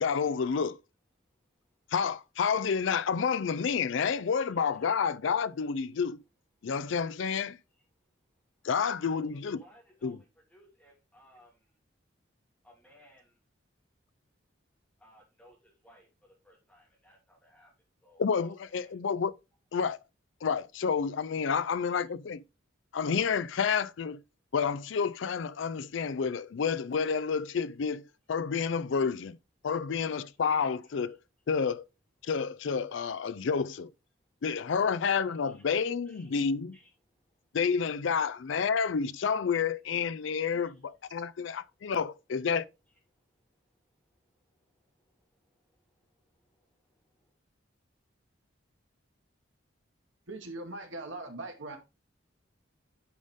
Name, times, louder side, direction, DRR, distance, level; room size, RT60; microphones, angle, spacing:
voice 1, 0.0-0.8 1.9-6.2 6.6-7.6 8.6-9.6 10.0-10.2 18.2-19.3 19.7-20.0 20.4-22.4 22.9-24.2 24.5-28.0 28.3-29.4 29.6-31.2 31.5-31.9 32.2-33.9 34.4-36.8 37.5-42.6, left 6 dB, 70° left, 0.4 m, -29 dB
voice 2, 1.2-1.8 3.3-3.4 4.7-4.9 6.6-6.7 7.7-11.8 12.6-13.4 15.0-17.7 18.0-18.9 21.6-22.2 29.9-30.2 30.8-31.2 34.7-34.9 35.3-35.6 36.0-36.4 36.7-37.6 39.2-39.3 40.2-40.9 41.2-41.9 42.9-47.4, equal, 5° left, 2.8 m, -63 dB
voice 3, 50.3-51.8, right 2 dB, 75° right, 2.0 m, -40 dB
9.3 x 5.1 x 3.6 m
head